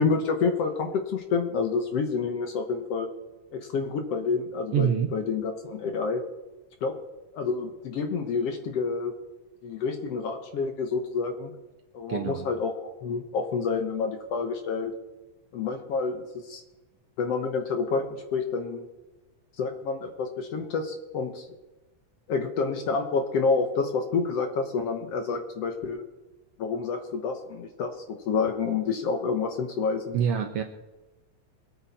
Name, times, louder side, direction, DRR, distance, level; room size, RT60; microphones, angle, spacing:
voice 1, 0.0-3.1 3.5-6.2 6.8-7.0 7.3-9.1 9.6-11.5 11.9-15.0 15.5-16.6 17.2-18.0 18.3-18.9 19.6-21.5 22.3-26.1 26.6-30.2, left 4 dB, 65° left, 5 dB, 1.8 m, -28 dB
voice 2, 4.7-5.1 12.1-12.5 30.1-30.6, right 8 dB, 70° right, 5 dB, 1.5 m, -25 dB
22.5 x 8.7 x 4.2 m, 1.1 s
omnidirectional pair, 3.6 m